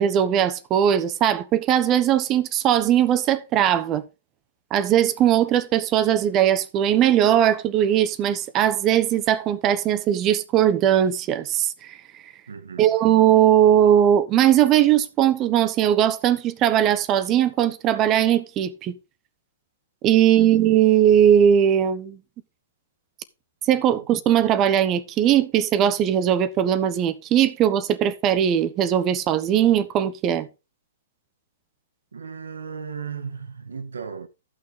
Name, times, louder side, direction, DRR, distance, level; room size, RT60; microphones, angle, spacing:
voice 1, 0.0-4.0 4.7-12.0 12.8-18.9 20.0-22.2 23.7-30.5, right 10 dB, 30° right, 1.1 m, -19 dB
voice 2, 12.5-12.9 20.2-20.5 32.1-34.3, right 6 dB, 80° right, 1.5 m, -36 dB
13.5 x 6.4 x 4.0 m
hypercardioid pair, 120°, 0 cm